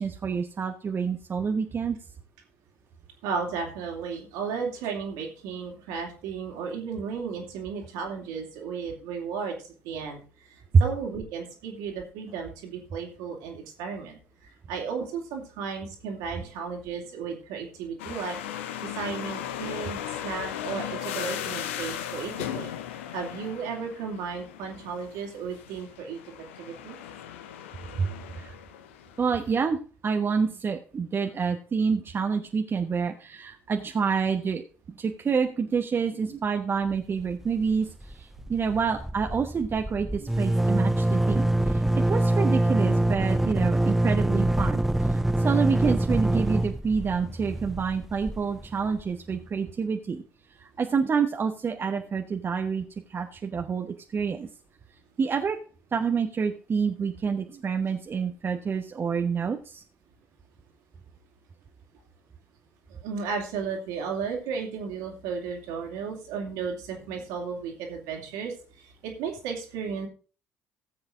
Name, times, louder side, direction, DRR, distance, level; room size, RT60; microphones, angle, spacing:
voice 1, 0.0-2.0 28.0-28.1 28.4-28.6 29.2-29.8 30.0-34.6 34.9-41.8 42.1-50.2 50.6-52.8 53.1-54.5 55.2-55.6 55.9-59.8, right 5 dB, 35° right, 5 dB, 1.0 m, -28 dB
voice 2, 3.2-27.0 38.4-38.5 62.9-70.1, right 5 dB, 65° right, 2 dB, 2.8 m, -34 dB
sound 1, 18.0-29.5, left 10 dB, 70° left, 0.8 m, -37 dB
sound 2, 37.2-37.7 38.0-38.1 38.4-49.1, right 1 dB, 5° right, 0.5 m, -25 dB
18.5 x 7.8 x 2.6 m, 0.38 s
figure-of-eight pair, 50°, 7 cm